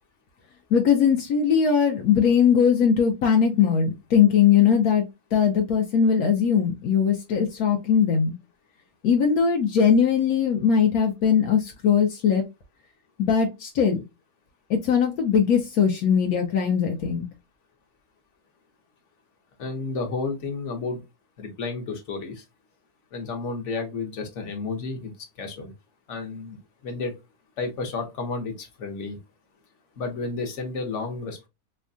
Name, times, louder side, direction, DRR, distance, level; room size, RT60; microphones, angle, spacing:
voice 1, 0.7-5.1 5.3-8.3 9.0-12.4 13.2-14.0 14.7-17.2, left 7 dB, 80° left, 1.2 m, -20 dB
voice 2, 19.6-21.0 21.4-22.4 23.1-25.1 25.4-25.7 26.1-26.6 26.8-27.1 27.6-29.2 30.0-31.5, left 4 dB, 55° left, 1.3 m, -31 dB
4.5 x 2.2 x 2.5 m
omnidirectional pair, 1.5 m